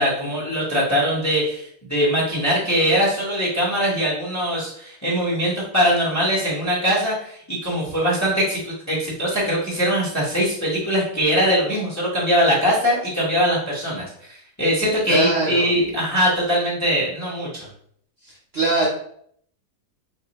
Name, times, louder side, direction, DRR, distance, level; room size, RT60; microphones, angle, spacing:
voice 1, 0.0-17.7, equal, 15° left, -5 dB, 0.8 m, -22 dB
voice 2, 15.1-15.7 18.2-18.9, right 2 dB, 50° right, -4 dB, 0.9 m, -22 dB
2.9 x 2.6 x 4.0 m, 0.65 s
omnidirectional pair, 1.6 m